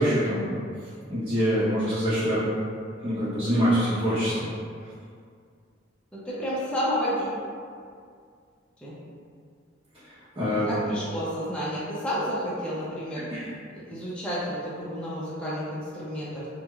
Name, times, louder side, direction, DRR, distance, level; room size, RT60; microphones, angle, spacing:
voice 1, 0.0-2.4 3.0-4.5 10.0-10.7 13.3-13.5, equal, 25° right, -15 dB, 0.8 m, -25 dB
voice 2, 6.1-7.3 8.8-8.9 10.7-13.2 13.7-16.5, equal, 5° left, -9 dB, 0.5 m, -30 dB
4.6 x 2.1 x 2.3 m, 2.2 s
head